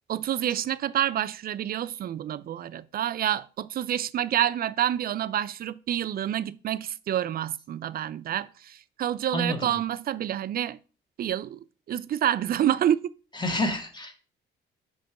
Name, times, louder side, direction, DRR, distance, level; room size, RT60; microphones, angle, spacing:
voice 1, 0.1-10.8 11.2-13.1, right 11 dB, 50° right, 0.4 m, -28 dB
voice 2, 9.3-9.8 13.3-14.1, left 1 dB, 20° left, 1.5 m, -29 dB
5.1 x 3.8 x 5.8 m
cardioid pair, 90°, 20 cm